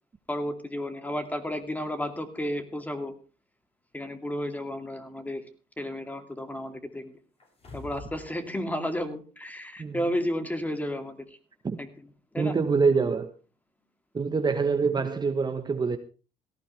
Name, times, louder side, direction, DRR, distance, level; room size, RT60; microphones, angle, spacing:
voice 1, 0.3-3.1 3.9-5.5 5.8-7.1 7.7-11.4 11.8-11.9 12.3-12.6, equal, 10° left, 2.5 m, -32 dB
sound 1, 7.4-8.3 8.6-8.7, left 3 dB, 35° left, 7.9 m, -44 dB
voice 2, 12.4-13.3 14.1-16.0, right 5 dB, 25° right, 1.2 m, -25 dB
17.5 x 15.0 x 3.4 m
cardioid pair, 110°, 17 cm